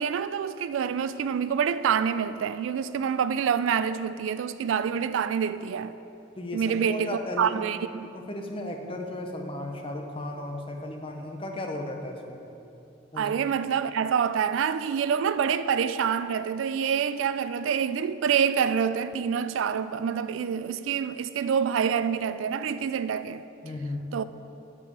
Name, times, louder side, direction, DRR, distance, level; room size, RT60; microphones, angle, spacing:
voice 1, 0.0-6.0 6.5-8.1 13.2-23.4 24.1-24.2, right 7 dB, 80° right, 0.3 m, -27 dB
voice 2, 6.4-7.7 8.1-12.4 13.1-13.3 23.6-24.1, left 1 dB, 30° left, 0.7 m, -35 dB
8.2 x 4.9 x 6.7 m
head